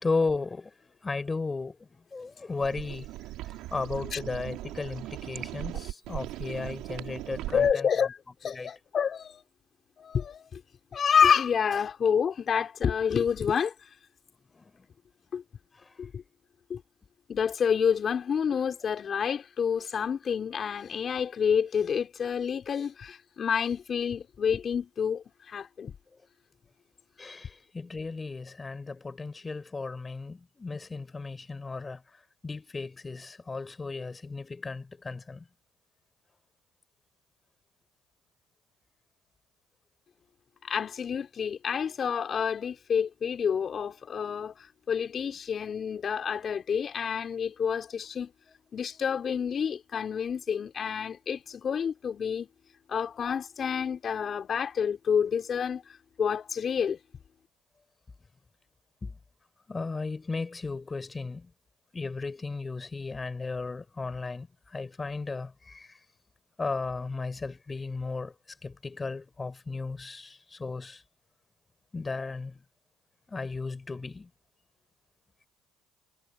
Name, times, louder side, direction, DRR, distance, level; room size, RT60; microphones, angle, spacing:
voice 1, 0.0-3.1 3.4-7.9 8.5-8.7 14.5-14.9 15.7-15.9 27.2-35.5 59.0-59.2 59.7-61.5 61.9-66.0 66.6-68.3 68.6-71.0 71.9-72.6 73.3-74.3, left 3 dB, 20° left, 6.4 m, -35 dB
sound 1, 2.6-7.7, right 16 dB, 70° right, 2.9 m, -39 dB
voice 2, 7.5-8.1 8.4-9.4 10.0-10.6 10.9-13.7 15.3-15.4 16.0-16.2 16.7-16.8 17.3-25.9 40.6-48.3 48.7-52.5 52.9-55.8 56.2-57.0, left 7 dB, 40° left, 4.7 m, -28 dB
supercardioid pair, 85°, 0 cm